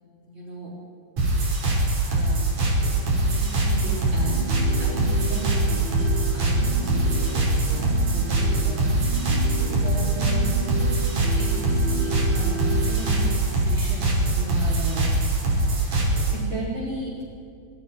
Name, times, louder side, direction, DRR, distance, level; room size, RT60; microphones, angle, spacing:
voice 1, 0.3-0.7 2.1-2.5 2.8-7.3 7.5-9.0 9.8-10.5 11.4-15.0 15.6-16.0 16.3-17.2, right 1 dB, 40° right, -4 dB, 5.6 m, -36 dB
sound 1, 1.2-16.4, right 2 dB, 75° right, 6.9 m, -23 dB
sound 2, 3.7-13.3, right 3 dB, 20° right, 2.8 m, -33 dB
26.5 x 25.5 x 4.7 m, 2.4 s
omnidirectional pair, 3.5 m